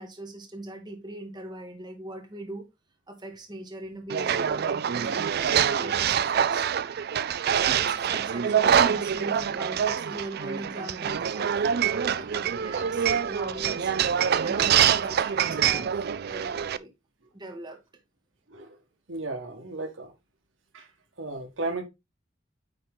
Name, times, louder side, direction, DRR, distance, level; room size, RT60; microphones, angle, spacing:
voice 1, 0.0-2.7 3.1-6.7 7.4-13.9 14.4-16.9 17.3-17.8, right 1 dB, 20° right, 1.7 m, -40 dB
sound 1, 4.1-16.8, right 8 dB, 55° right, 0.4 m, -25 dB
voice 2, 4.9-5.2 18.5-18.8 19.1-20.1 20.7-20.9 21.2-21.8, right 2 dB, 90° right, 1.7 m, -35 dB
sound 2, 11.5-16.7, left 1 dB, 50° left, 2.2 m, -52 dB
9.6 x 3.7 x 3.8 m
head